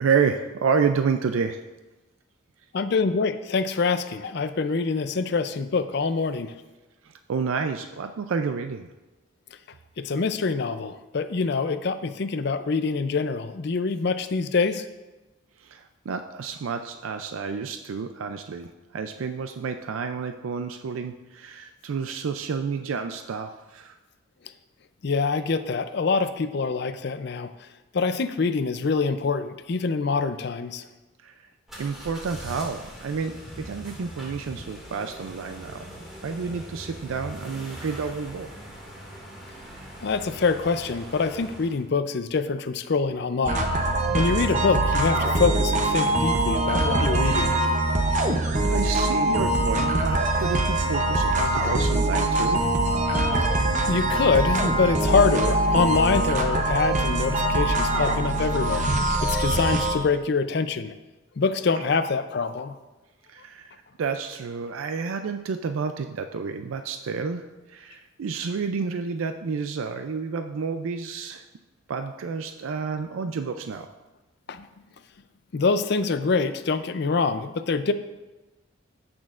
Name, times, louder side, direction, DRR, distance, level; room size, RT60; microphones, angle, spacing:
voice 1, 0.0-1.6 7.0-8.9 15.6-24.0 31.2-31.3 31.8-35.9 36.2-38.5 48.2-52.7 61.8-61.9 63.3-63.7 64.0-71.4 71.9-73.9, right 5 dB, 85° right, 7 dB, 0.4 m, -30 dB
voice 2, 2.7-6.5 10.0-14.8 25.0-27.5 27.9-30.9 40.0-43.7 44.1-47.6 53.9-58.9 59.2-60.9 61.4-62.7 74.5-74.7 75.5-77.9, left 4 dB, 55° left, 11 dB, 0.4 m, -25 dB
sound 1, 31.7-41.8, equal, ahead, 2.0 m, -41 dB
sound 2, 43.5-60.0, right 1 dB, 35° right, 0.7 m, -23 dB
15.5 x 6.2 x 2.4 m, 1.1 s
head